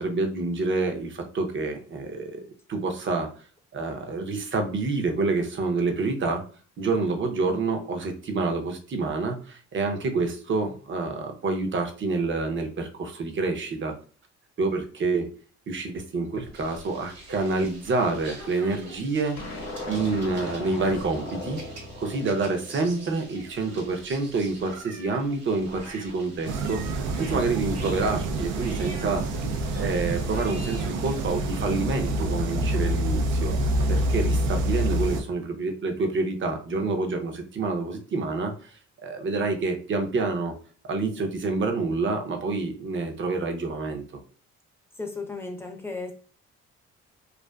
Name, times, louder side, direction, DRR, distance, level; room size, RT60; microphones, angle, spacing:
voice 1, 0.0-3.3 3.7-6.4 6.8-13.9 14.6-15.3 15.7-21.6 22.0-29.2 29.7-33.5 33.9-38.7 39.0-40.5 40.9-44.2, right 3 dB, 40° right, 5 dB, 0.6 m, -28 dB
sound 1, 16.5-31.3, right 2 dB, 60° right, 1.2 m, -45 dB
sound 2, 19.4-23.8, left 2 dB, 50° left, 0.9 m, -38 dB
sound 3, 26.4-35.2, right 1 dB, 85° right, 0.5 m, -27 dB
voice 2, 45.0-46.1, left 3 dB, 10° left, 2 dB, 0.6 m, -34 dB
2.5 x 2.3 x 2.2 m, 0.41 s
cardioid pair, 90°, 30 cm